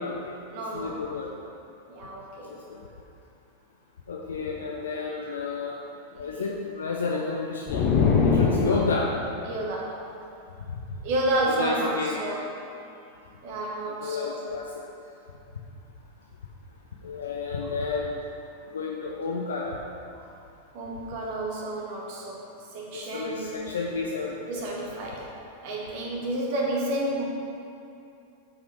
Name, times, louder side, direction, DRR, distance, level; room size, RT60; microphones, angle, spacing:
voice 1, 0.0-0.4 0.7-1.3 4.1-5.8 6.2-7.9 8.2-9.1 11.4-12.2 13.8-14.7 17.0-18.2 18.7-19.8 22.9-24.7, left 4 dB, 70° left, -1 dB, 0.6 m, -31 dB
voice 2, 0.5-1.0 1.9-2.6 6.2-6.5 8.3-8.7 9.4-10.2 11.0-12.5 13.4-14.4 17.6-17.7 20.1-20.2 20.7-23.5 24.5-25.3 25.6-27.3, right 1 dB, 45° right, -3 dB, 1.5 m, -31 dB
sound 1, 7.7-9.2, left 5 dB, 35° left, 1.1 m, -22 dB
6.0 x 5.0 x 6.2 m, 2.6 s
figure-of-eight pair, 90°, 0 cm